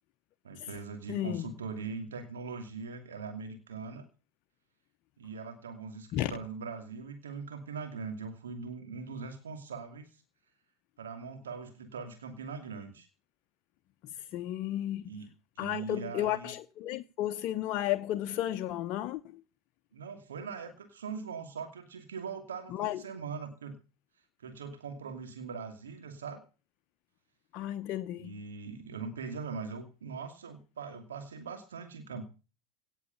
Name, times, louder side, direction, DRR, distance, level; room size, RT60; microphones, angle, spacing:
voice 1, 0.4-4.1 5.2-10.2 11.0-13.1 15.1-15.3 15.6-16.5 19.9-23.8 24.4-26.4 28.2-32.2, right 5 dB, 75° right, 2.5 m, -41 dB
voice 2, 1.1-1.5 6.1-6.3 14.3-15.1 15.6-19.4 22.7-23.0 27.5-28.3, left 13 dB, 50° left, 0.9 m, -33 dB
17.5 x 8.2 x 6.9 m
figure-of-eight pair, 80°, 0 cm